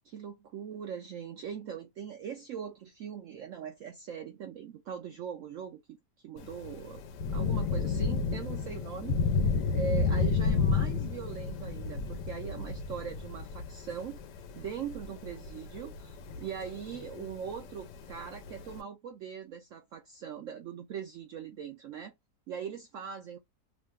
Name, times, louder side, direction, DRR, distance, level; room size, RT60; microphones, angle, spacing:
voice 1, 0.0-6.0 6.2-7.0 7.3-14.2 14.5-22.1 22.5-23.4, right 7 dB, 75° right, 0.7 m, -41 dB
Thunder / Rain, 6.4-18.8, left 5 dB, 90° left, 1.2 m, -32 dB
3.1 x 2.1 x 3.4 m
omnidirectional pair, 1.8 m